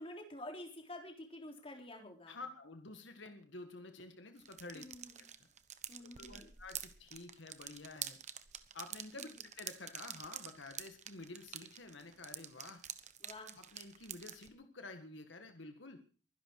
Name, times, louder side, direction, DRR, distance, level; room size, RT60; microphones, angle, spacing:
voice 1, 0.0-2.4 4.7-5.2 5.9-6.5 9.2-9.3 13.2-13.5, left 1 dB, 30° left, 3 dB, 3.6 m, -49 dB
voice 2, 2.3-4.8 5.2-5.5 6.0-8.2 8.7-12.8 13.6-16.0, left 3 dB, 75° left, 7 dB, 1.8 m, -50 dB
sound 1, 4.4-14.5, right 10 dB, 40° right, 1.1 m, -47 dB
23.0 x 11.0 x 4.8 m, 0.40 s
head